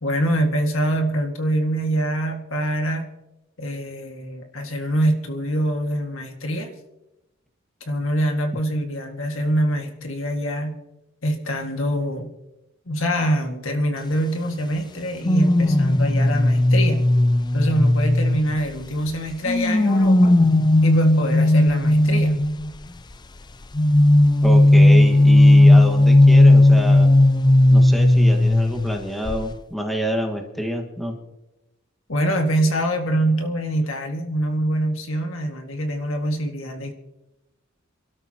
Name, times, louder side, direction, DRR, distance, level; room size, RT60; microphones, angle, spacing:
voice 1, 0.0-3.1 3.6-6.7 7.9-10.8 11.2-12.3 12.9-17.1 17.5-20.3 20.8-22.4 32.1-36.9, right 1 dB, 75° left, 3 dB, 2.0 m, -24 dB
sound 1, 15.2-18.8 19.5-22.7 23.7-29.0 29.2-29.5, left 1 dB, 20° left, 0.5 m, -15 dB
voice 2, 24.4-27.1 27.7-31.1, equal, ahead, 2 dB, 1.7 m, -27 dB
28.0 x 12.5 x 3.0 m, 0.95 s
head